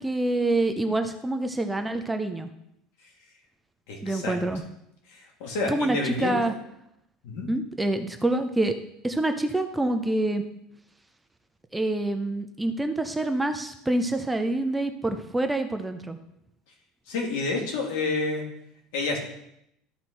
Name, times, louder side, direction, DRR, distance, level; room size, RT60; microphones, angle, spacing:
voice 1, 0.0-2.5 4.0-4.6 5.7-6.5 7.5-8.7 9.0-10.4 11.7-16.2, right 2 dB, 5° right, 7 dB, 0.5 m, -26 dB
voice 2, 3.9-4.4 5.1-6.5 7.2-7.5 17.1-18.4 18.9-19.2, left 3 dB, 80° left, 0 dB, 2.6 m, -29 dB
13.0 x 4.6 x 4.3 m, 0.78 s
cardioid pair, 155°, 0 cm